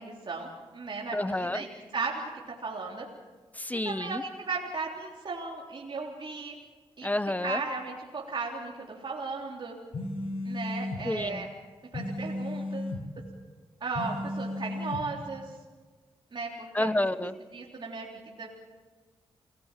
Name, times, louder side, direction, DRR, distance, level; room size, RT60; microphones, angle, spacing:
voice 1, 0.0-1.7 1.9-3.1 3.8-6.5 7.0-7.1 7.4-9.8 10.4-11.5 11.9-12.9 13.8-15.4 16.3-16.9 17.5-18.5, right 4 dB, 50° right, -3 dB, 3.6 m, -36 dB
voice 2, 1.1-1.6 3.6-4.2 7.0-7.6 11.0-11.5 16.7-17.3, left 1 dB, 15° left, 13 dB, 1.0 m, -29 dB
sound 1, 9.9-11.0 11.9-13.0 13.9-15.0, left 2 dB, 60° left, 7.1 m, -34 dB
29.5 x 18.5 x 7.5 m, 1.4 s
cardioid pair, 65°, 10 cm